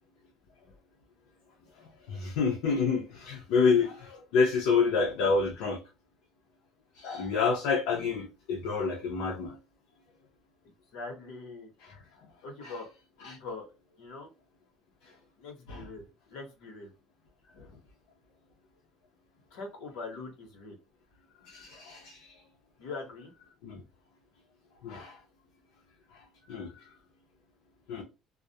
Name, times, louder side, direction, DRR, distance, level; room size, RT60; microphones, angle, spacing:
voice 1, 2.1-5.8 6.9-9.6 11.8-11.9 12.6-12.8 13.2-13.4 15.7-15.9 21.4-22.2 23.6-23.8 24.8-25.2 26.5-26.7 27.9-28.0, left 5 dB, 90° left, 0.6 m, -28 dB
voice 2, 10.9-11.7 12.4-12.9 13.2-13.7 14.0-14.3 15.4-16.9 19.5-20.8 22.8-23.3, left 3 dB, 70° left, 1.0 m, -42 dB
2.4 x 2.1 x 2.7 m
cardioid pair, 175°, 0 cm